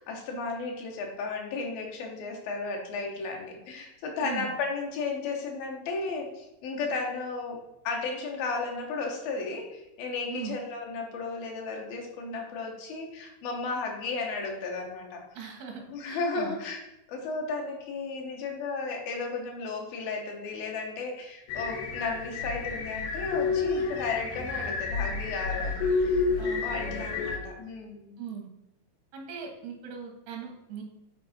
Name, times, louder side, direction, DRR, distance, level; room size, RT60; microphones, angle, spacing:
voice 1, 0.0-7.6 7.8-15.3 15.9-16.8 17.1-26.3 26.6-28.2, left 4 dB, 75° left, 1 dB, 2.9 m, -34 dB
voice 2, 15.3-16.6 26.4-27.0 28.2-28.5 29.1-30.8, right 7 dB, 85° right, 3 dB, 3.3 m, -40 dB
sound 1, 21.5-27.4, left 4 dB, 90° left, 3.1 m, -30 dB
9.4 x 4.6 x 4.3 m, 0.88 s
omnidirectional pair, 4.5 m